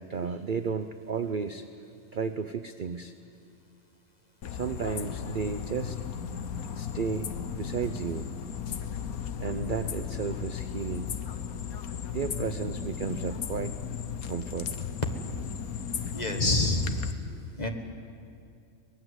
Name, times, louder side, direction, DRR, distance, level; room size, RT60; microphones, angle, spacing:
voice 1, 0.0-1.7 2.1-3.1 4.5-6.0 6.7-8.3 9.4-11.1 12.1-13.7 14.2-14.7 16.0-16.1 17.2-17.4, right 6 dB, 50° right, 10 dB, 0.6 m, -33 dB
sound 1, 4.4-17.1, left 8 dB, 75° left, 1.4 m, -36 dB
voice 2, 16.1-17.0 17.5-17.7, left 2 dB, 30° left, 4 dB, 1.6 m, -26 dB
24.0 x 19.5 x 8.0 m, 2.5 s
omnidirectional pair, 1.5 m